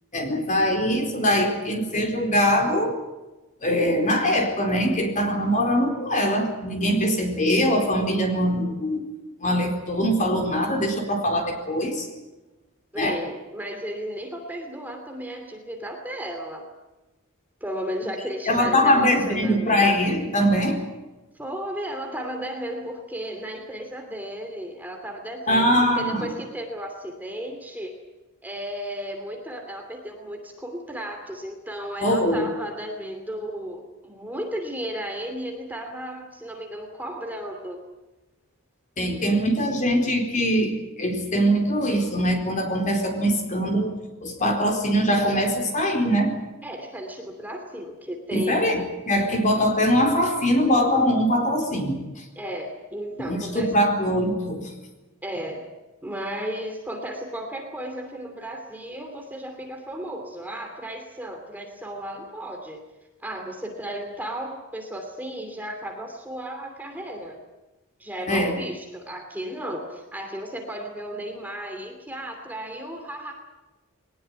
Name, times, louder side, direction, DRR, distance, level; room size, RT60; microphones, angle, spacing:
voice 1, 0.1-2.9 3.6-9.0 9.4-12.1 13.0-13.2 18.5-20.8 25.5-26.3 32.0-32.5 39.0-43.9 44.2-46.3 48.3-52.2 53.2-54.7 68.3-68.5, equal, 35° left, 3 dB, 4.3 m, -22 dB
voice 2, 12.9-16.6 17.6-19.9 21.3-27.9 28.4-37.8 46.6-48.7 49.3-49.4 52.4-53.7 55.2-55.6 56.0-62.8 63.2-67.4 68.0-73.3, equal, 10° right, 3 dB, 2.8 m, -34 dB
21.5 x 19.5 x 9.2 m, 1.1 s
head